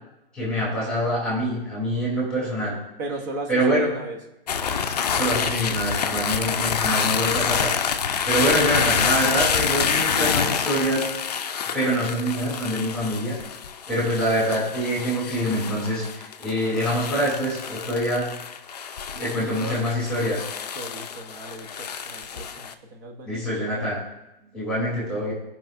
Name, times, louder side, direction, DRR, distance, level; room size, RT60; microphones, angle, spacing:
voice 1, 0.3-2.7 3.5-3.9 5.1-7.7 8.3-11.1 11.7-13.4 13.9-18.3 19.1-20.4 23.2-24.0 24.5-25.3, equal, 5° left, -6 dB, 3.0 m, -25 dB
voice 2, 3.0-4.2 19.1-20.0 20.7-23.7, right 2 dB, 20° right, 3 dB, 0.9 m, -37 dB
sound 1, 4.5-22.7, left 7 dB, 45° left, 0.6 m, -27 dB
14.0 x 5.6 x 2.6 m, 0.90 s
hypercardioid pair, 170°, 30 cm